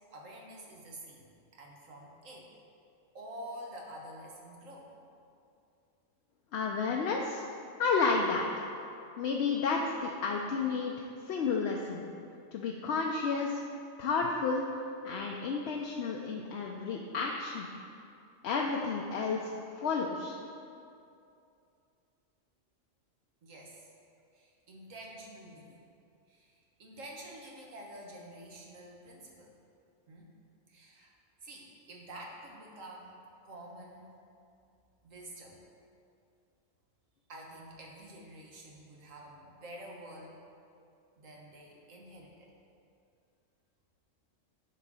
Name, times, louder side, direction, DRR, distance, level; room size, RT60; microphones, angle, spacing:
voice 1, 0.1-1.3 1.6-2.5 3.1-4.9 23.4-23.9 24.3-25.8 26.3-29.5 30.1-30.3 30.7-31.1 31.4-34.2 35.0-35.6 37.3-40.4 41.2-42.5, right 1 dB, 90° right, -1 dB, 1.6 m, -48 dB
voice 2, 6.5-7.4 7.8-8.5 9.2-12.0 12.5-13.6 14.0-14.6 15.0-17.7 18.4-19.5 19.8-20.4, left 4 dB, 65° left, 0 dB, 0.8 m, -31 dB
10.0 x 3.9 x 6.1 m, 2.5 s
omnidirectional pair, 1.3 m